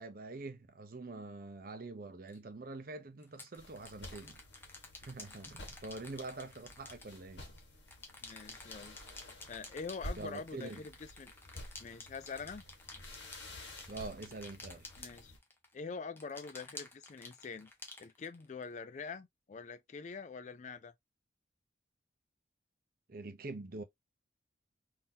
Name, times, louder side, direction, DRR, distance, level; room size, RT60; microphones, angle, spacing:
voice 1, 0.0-4.4 5.0-7.5 10.2-10.8 13.9-14.9 23.1-23.8, right 3 dB, 50° right, 0.6 m, -45 dB
sound 1, 2.3-2.4 3.2-7.6 7.9-15.7 16.2-18.6, left 2 dB, 10° left, 0.7 m, -51 dB
sound 2, 3.6-15.4, left 1 dB, 70° left, 1.6 m, -51 dB
voice 2, 8.2-9.0 9.5-11.3 11.8-12.6 15.0-15.3 15.7-17.7 18.0-20.9, left 5 dB, 40° left, 0.3 m, -45 dB
3.7 x 2.7 x 2.7 m
head